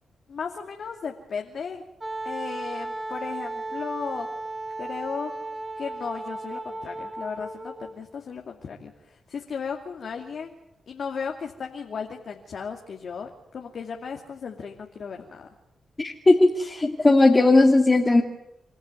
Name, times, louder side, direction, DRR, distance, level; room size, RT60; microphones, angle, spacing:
voice 1, 0.3-1.8 2.2-4.3 4.8-5.3 5.8-10.6 10.9-15.5, left 6 dB, 70° left, 2 dB, 2.5 m, -35 dB
Wind instrument woodwind instrument, 2.0-8.0, right 2 dB, 25° right, 4.6 m, -35 dB
voice 2, 16.0-18.2, left 2 dB, 30° left, 1 dB, 2.5 m, -18 dB
28.0 x 14.5 x 9.6 m, 0.86 s
supercardioid pair, 50°, 0 cm